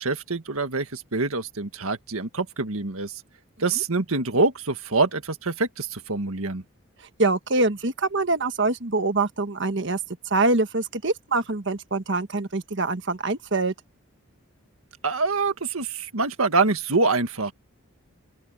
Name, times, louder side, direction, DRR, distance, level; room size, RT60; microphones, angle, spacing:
voice 1, 0.0-3.2 3.6-6.6 15.0-17.5, right 3 dB, 85° right, 1.8 m, -25 dB
voice 2, 7.0-10.0 10.2-13.7, right 3 dB, 55° right, 1.3 m, -24 dB
open air
head